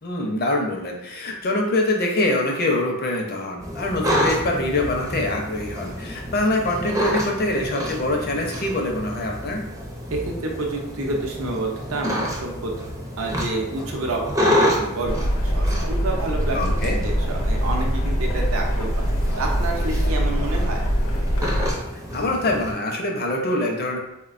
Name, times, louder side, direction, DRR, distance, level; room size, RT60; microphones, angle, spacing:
voice 1, 0.0-9.6 16.5-17.0 22.1-24.0, left 1 dB, 45° left, 1 dB, 0.5 m, -24 dB
sound 1, 3.6-22.7, equal, 15° right, 0.4 m, -29 dB
voice 2, 10.1-12.8 13.2-19.1 19.4-20.8, right 2 dB, 70° right, 0 dB, 0.5 m, -29 dB
sound 2, 15.0-21.7, equal, 80° left, 0.7 m, -23 dB
4.0 x 2.1 x 2.5 m, 0.87 s
head